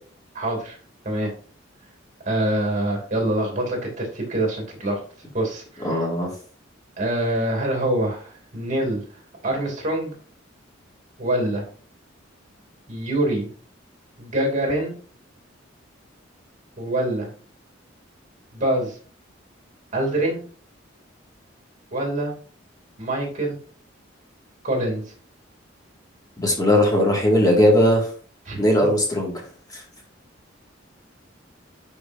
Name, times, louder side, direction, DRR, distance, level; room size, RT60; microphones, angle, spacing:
voice 1, 0.3-0.8 1.0-1.3 2.2-5.0 5.3-6.0 7.0-9.0 9.4-10.1 11.2-11.7 12.9-13.5 14.2-15.0 16.8-17.3 18.5-19.0 19.9-20.4 21.9-22.3 23.0-23.6 24.6-25.1 28.4-28.6, right 1 dB, 40° right, 1 dB, 2.7 m, -25 dB
voice 2, 5.8-6.3 26.4-28.1 28.6-29.3, left 1 dB, 20° left, -1 dB, 2.1 m, -18 dB
11.0 x 4.8 x 2.7 m, 0.43 s
head